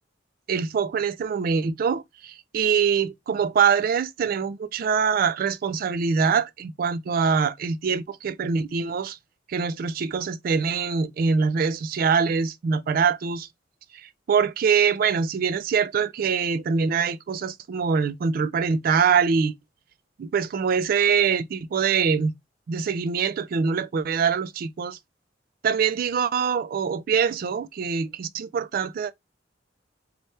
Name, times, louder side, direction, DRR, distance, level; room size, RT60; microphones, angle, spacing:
voice 1, 0.5-9.2 9.5-13.5 13.9-19.5 20.2-22.3 22.7-25.0 25.6-29.1, right 6 dB, 50° right, 0.3 m, -24 dB
4.1 x 2.2 x 3.2 m
head